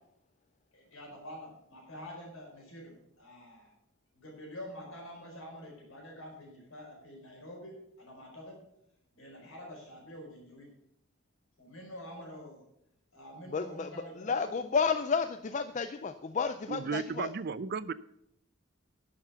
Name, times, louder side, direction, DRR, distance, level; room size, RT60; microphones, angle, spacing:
voice 1, 0.7-3.7 4.1-8.6 9.1-10.7 11.6-12.6 13.1-14.6, equal, 70° left, -1 dB, 4.9 m, -47 dB
voice 2, 13.5-13.9 14.2-17.3, left 5 dB, 35° left, 10 dB, 0.4 m, -31 dB
voice 3, 16.7-17.9, right 5 dB, 45° right, 17 dB, 0.4 m, -34 dB
11.5 x 6.9 x 6.9 m, 0.77 s
head